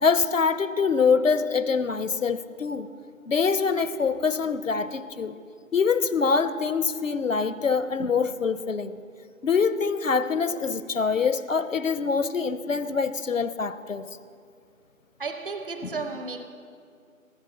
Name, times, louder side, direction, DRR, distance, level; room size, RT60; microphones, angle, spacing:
voice 1, 0.0-2.9 3.3-5.4 5.7-9.0 9.4-14.1, left 5 dB, 70° left, 0.7 m, -24 dB
voice 2, 15.2-16.4, right 4 dB, 40° right, 0.8 m, -33 dB
19.5 x 7.3 x 6.4 m
figure-of-eight pair, 170°, 41 cm